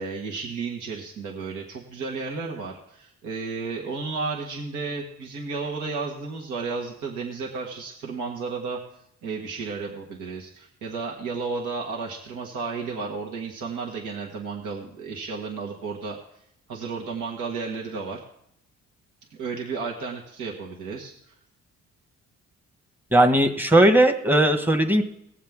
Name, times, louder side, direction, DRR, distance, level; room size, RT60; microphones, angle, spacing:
voice 1, 0.0-8.8 9.2-16.2 16.7-18.2 19.3-21.3, right 4 dB, 80° right, -1 dB, 1.7 m, -33 dB
voice 2, 23.1-25.0, right 1 dB, 5° right, 5 dB, 1.3 m, -18 dB
19.0 x 7.5 x 3.6 m, 0.76 s
cardioid pair, 90°, 30 cm